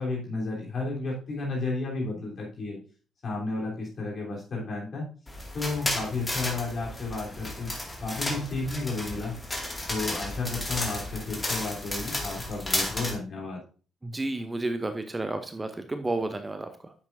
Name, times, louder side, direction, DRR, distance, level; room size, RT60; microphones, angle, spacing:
voice 1, 0.0-2.8 3.2-5.1 5.5-7.7 8.0-9.4 9.9-13.6, left 3 dB, 45° left, -3 dB, 3.6 m, -32 dB
sound 1, 5.3-13.1, left 1 dB, 20° left, 2.2 m, -33 dB
voice 2, 14.0-16.9, right 2 dB, 20° right, 9 dB, 0.7 m, -31 dB
9.5 x 7.3 x 2.6 m, 0.38 s
figure-of-eight pair, 45°, 0 cm